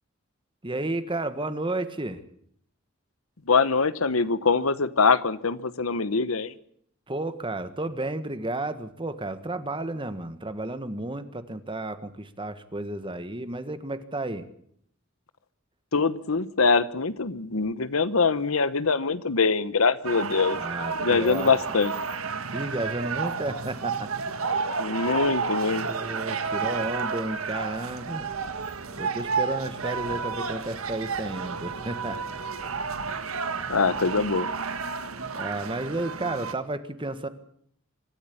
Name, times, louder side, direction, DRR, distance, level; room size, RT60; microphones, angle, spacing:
voice 1, 0.6-2.2 7.1-14.5 20.5-21.5 22.5-24.1 25.7-28.3 29.0-32.2 35.3-37.3, right 2 dB, 25° right, 11 dB, 1.6 m, -32 dB
voice 2, 3.5-6.5 15.9-20.6 21.0-21.9 24.8-25.9 33.7-34.5, left 4 dB, 80° left, 15 dB, 1.1 m, -23 dB
sound 1, 20.0-36.5, right 5 dB, 85° right, 1.7 m, -31 dB
25.0 x 13.0 x 8.6 m, 0.66 s
head